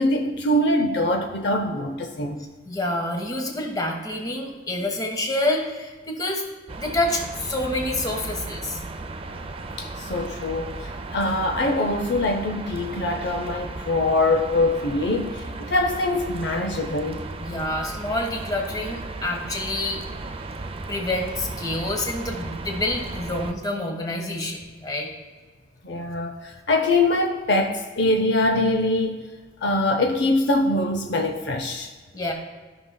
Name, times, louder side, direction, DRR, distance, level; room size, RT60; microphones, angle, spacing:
voice 1, 0.0-2.5 9.8-17.2 25.8-29.2 29.6-31.9, left 2 dB, 65° left, 0.6 m, -23 dB
voice 2, 2.6-6.4 6.8-8.8 17.4-20.0 20.9-25.1 32.1-32.3, left 1 dB, 20° left, 1.2 m, -27 dB
sound 1, 6.7-23.5, right 3 dB, 30° right, 0.5 m, -35 dB
14.0 x 5.6 x 2.2 m
head